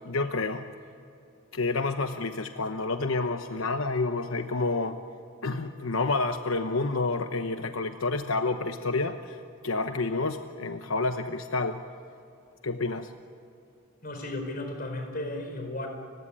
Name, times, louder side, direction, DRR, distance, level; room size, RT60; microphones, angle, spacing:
voice 1, 0.0-0.6 1.5-5.0 5.4-11.8 12.6-13.1, left 3 dB, 90° left, 7 dB, 0.9 m, -29 dB
voice 2, 14.0-15.9, left 1 dB, 45° left, 4 dB, 4.6 m, -34 dB
30.0 x 16.0 x 10.0 m, 2.6 s
head